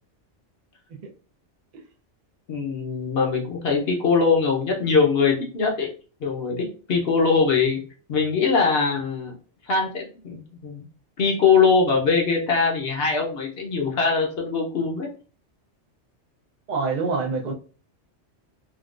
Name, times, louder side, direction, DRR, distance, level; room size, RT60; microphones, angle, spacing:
voice 1, 2.5-5.9 6.2-7.8 8.1-9.3 9.7-10.8 11.2-15.1, left 5 dB, 60° left, 0.9 m, -22 dB
voice 2, 16.7-17.5, right 4 dB, 50° right, 0.6 m, -25 dB
3.7 x 2.2 x 2.4 m
omnidirectional pair, 1.2 m